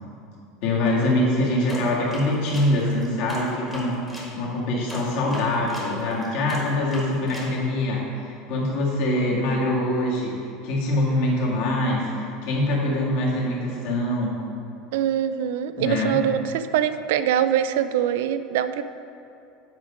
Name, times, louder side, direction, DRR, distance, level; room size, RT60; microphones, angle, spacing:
voice 1, 0.6-4.0 4.3-10.3 10.6-14.3 15.8-16.2, left 1 dB, 50° left, -3 dB, 1.7 m, -24 dB
sound 1, 1.7-4.3 4.9-7.5, equal, 5° left, 1.2 m, -37 dB
voice 2, 14.9-18.8, right 10 dB, 70° right, 12 dB, 0.3 m, -23 dB
8.0 x 5.1 x 4.9 m, 2.6 s
supercardioid pair, 180°, 0 cm